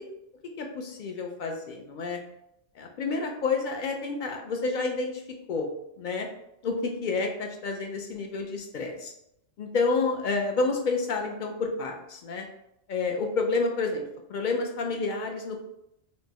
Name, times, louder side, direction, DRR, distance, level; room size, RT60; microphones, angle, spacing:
voice 1, 0.6-2.2 2.8-5.1 5.5-5.7 6.0-6.3 6.6-9.1 9.6-12.5 12.9-14.0 14.3-15.6, left 3 dB, 60° left, 2 dB, 0.5 m, -29 dB
4.4 x 2.1 x 2.8 m, 0.82 s
omnidirectional pair, 1.2 m